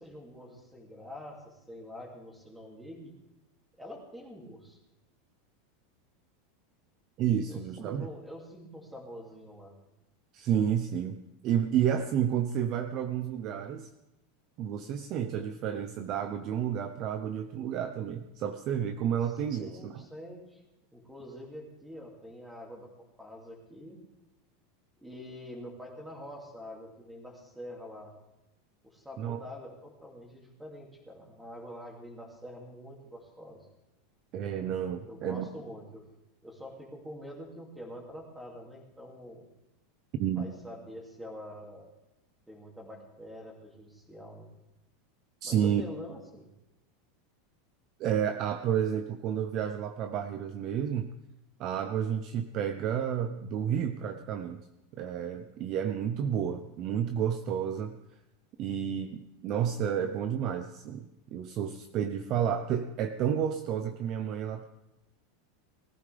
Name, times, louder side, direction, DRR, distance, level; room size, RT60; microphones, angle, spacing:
voice 1, 0.0-3.1 3.8-4.8 7.4-9.7 19.6-20.6 20.9-24.0 25.0-28.1 28.8-33.7 35.0-36.0 36.4-39.4 40.4-42.0 42.5-44.5 45.4-46.5, equal, 5° right, 0 dB, 2.5 m, -46 dB
voice 2, 7.2-8.1 10.3-13.9 14.6-20.1 29.2-29.4 34.3-35.5 40.1-40.5 45.4-45.8 48.0-51.1 51.6-54.6 55.0-58.0 58.6-64.6, right 9 dB, 35° right, 8 dB, 0.7 m, -31 dB
19.5 x 14.5 x 3.4 m, 0.90 s
supercardioid pair, 165°, 0 cm